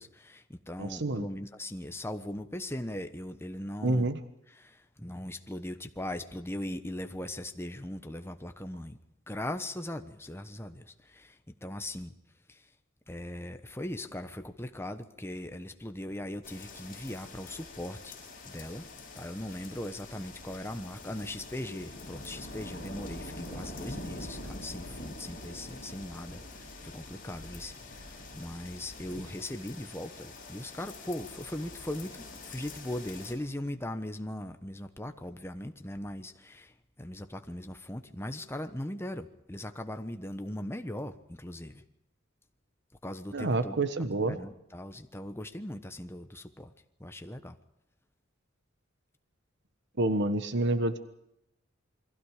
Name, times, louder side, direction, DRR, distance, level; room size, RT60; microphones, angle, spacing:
voice 1, 0.0-4.1 4.5-9.0 9.3-12.1 12.5-12.7 13.1-18.2 18.4-18.9 19.2-41.8 43.0-43.8 44.3-46.7 47.0-47.6, left 1 dB, 10° left, 7 dB, 1.1 m, -39 dB
voice 2, 0.8-1.3 3.8-4.2 43.3-44.4 50.0-51.0, right 2 dB, 60° right, 10 dB, 1.4 m, -28 dB
sound 1, 16.4-33.3, left 2 dB, 40° left, 7.9 m, -45 dB
28.5 x 23.0 x 5.0 m, 0.83 s
head